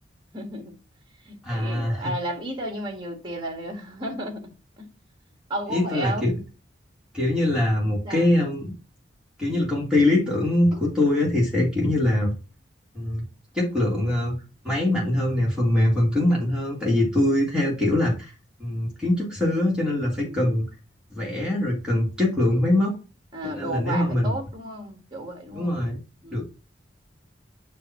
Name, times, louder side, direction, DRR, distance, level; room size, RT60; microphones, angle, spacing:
voice 1, 0.3-0.7 1.2-4.4 4.8-4.9 5.5-6.4 8.0-8.3 20.2-20.5 22.5-22.7 23.3-25.8 26.2-26.4, right 1 dB, 25° right, 1.5 m, -33 dB
voice 2, 1.4-2.1 5.7-6.4 7.1-8.7 9.4-12.3 12.9-13.2 13.5-14.4 14.6-18.3 18.6-20.6 21.1-23.0 23.4-24.3 25.5-26.0 26.3-26.4, left 1 dB, 5° right, 1.9 m, -23 dB
6.9 x 2.8 x 5.7 m
head